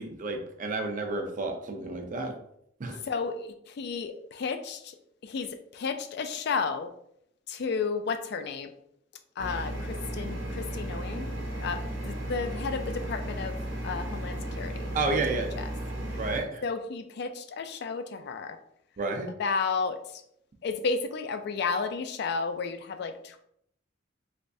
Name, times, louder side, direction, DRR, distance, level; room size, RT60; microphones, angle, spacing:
voice 1, 0.0-2.3 2.8-3.0 14.9-15.5 16.2-16.6 19.0-19.3, right 3 dB, 45° right, 4 dB, 0.5 m, -31 dB
voice 2, 3.0-5.0 5.2-6.9 7.5-8.7 9.4-11.3 11.6-13.6 13.8-14.9 15.3-15.7 16.6-18.6 19.4-20.2 20.6-23.4, left 5 dB, 60° left, 8 dB, 0.3 m, -32 dB
sound 1, 9.4-16.4, right 1 dB, 90° right, 0.8 m, -34 dB
3.3 x 3.1 x 2.6 m, 0.71 s
head